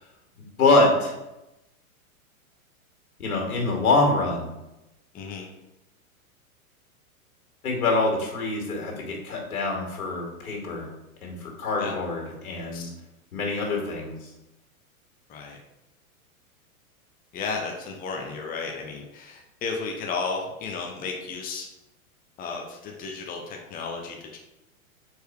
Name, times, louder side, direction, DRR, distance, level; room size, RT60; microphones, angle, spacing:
voice 1, 0.6-1.1 3.2-4.5 7.6-10.9 11.2-12.9 13.3-14.3, left 2 dB, 85° left, 0 dB, 2.4 m, -25 dB
voice 2, 5.1-5.5 11.8-11.9 12.7-12.9 15.3-15.6 17.3-21.7 22.4-24.4, left 4 dB, 20° left, 1 dB, 0.8 m, -33 dB
5.0 x 4.6 x 4.7 m, 0.94 s
hypercardioid pair, 125°, 43 cm